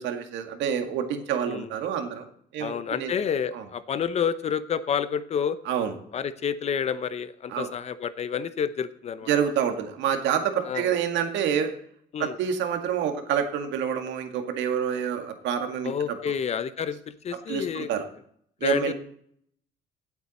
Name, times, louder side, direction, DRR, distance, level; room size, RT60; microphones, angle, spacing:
voice 1, 0.0-2.3 2.5-3.1 3.5-3.6 5.7-5.9 7.5-7.7 9.3-11.7 12.2-16.2 17.5-18.1 18.6-18.9, right 8 dB, 85° right, 6 dB, 2.0 m, -27 dB
voice 2, 2.6-5.6 6.1-9.3 10.6-11.0 12.1-12.4 15.8-17.9 18.6-18.9, left 7 dB, 35° left, 14 dB, 0.7 m, -29 dB
17.0 x 8.2 x 4.3 m, 0.66 s
cardioid pair, 155°, 19 cm